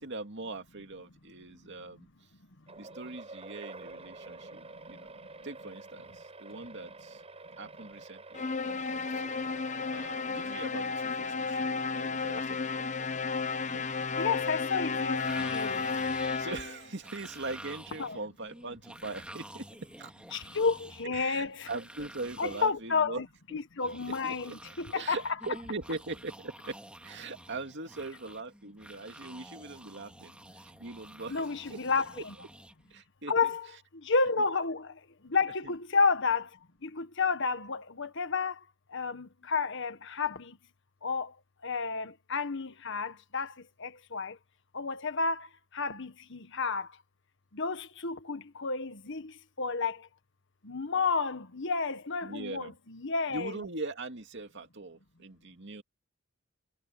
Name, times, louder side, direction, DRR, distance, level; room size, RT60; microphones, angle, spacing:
voice 1, 0.0-2.1 2.8-5.1 5.4-7.2 7.6-9.3 9.6-13.1 13.7-13.9 16.4-19.7 20.0-20.4 21.0-23.2 23.5-23.6 24.0-26.8 27.0-31.4 31.7-31.8 32.1-32.5 32.9-33.5 35.6-35.7 52.2-52.7 53.3-55.8, right 3 dB, 60° right, 2.5 m, -41 dB
sound 1, 2.7-11.4, right 3 dB, 30° right, 6.4 m, -48 dB
sound 2, 8.3-16.9, left 4 dB, 35° left, 1.0 m, -33 dB
voice 2, 14.2-15.8 18.0-18.2 20.3-21.7 22.4-23.3 23.5-25.2 31.3-32.3 33.3-33.7 34.0-34.9 35.2-36.5 36.8-38.6 38.9-40.6 41.0-41.3 41.6-43.5 43.8-44.4 44.7-45.5 45.7-46.9 47.5-50.0 50.6-53.5, left 4 dB, 60° left, 1.5 m, -31 dB
sound 3, 15.2-22.7 23.8-33.0, right 1 dB, 5° right, 2.3 m, -50 dB
head